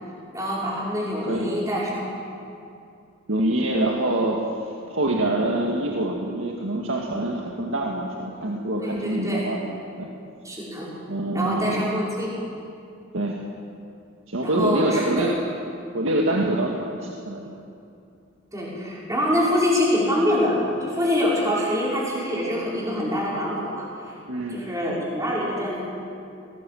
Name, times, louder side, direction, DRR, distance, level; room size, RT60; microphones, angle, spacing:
voice 1, 0.3-2.1 5.1-5.3 8.8-9.4 10.4-10.9 11.3-12.3 14.4-15.3 18.5-24.1 24.5-25.8, left 1 dB, 15° right, -6 dB, 5.4 m, -25 dB
voice 2, 3.3-4.4 4.9-9.6 10.0-10.1 11.1-12.0 13.1-13.4 14.3-15.4 15.9-17.5 24.3-24.6, right 1 dB, 75° right, -1 dB, 1.8 m, -25 dB
20.0 x 18.0 x 7.8 m, 2.5 s
head